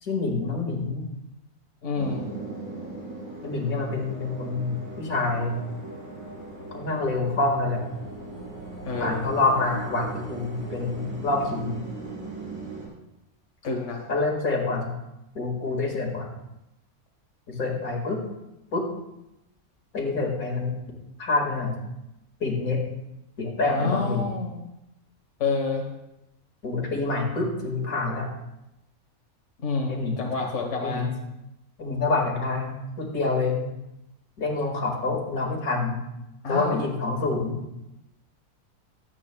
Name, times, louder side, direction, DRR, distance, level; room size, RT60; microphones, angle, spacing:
voice 1, 0.0-1.1 3.4-5.6 6.7-7.9 9.0-11.8 14.1-14.9 15.4-16.3 17.5-18.2 18.7-18.9 19.9-20.8 21.2-21.8 22.4-22.8 23.4-24.2 26.6-28.3 29.9-30.3 30.8-31.1 31.8-33.7 34.4-36.0 36.5-37.6, left 3 dB, 70° left, 0 dB, 2.3 m, -27 dB
voice 2, 1.8-2.2 8.8-9.2 13.6-14.0 23.7-24.6 25.4-25.8 29.6-31.1 36.4-36.8, left 4 dB, 55° left, 0 dB, 1.5 m, -28 dB
sound 1, 2.0-12.9, right 3 dB, 65° right, 4.2 m, -38 dB
22.5 x 8.4 x 2.2 m, 0.90 s
omnidirectional pair, 1.5 m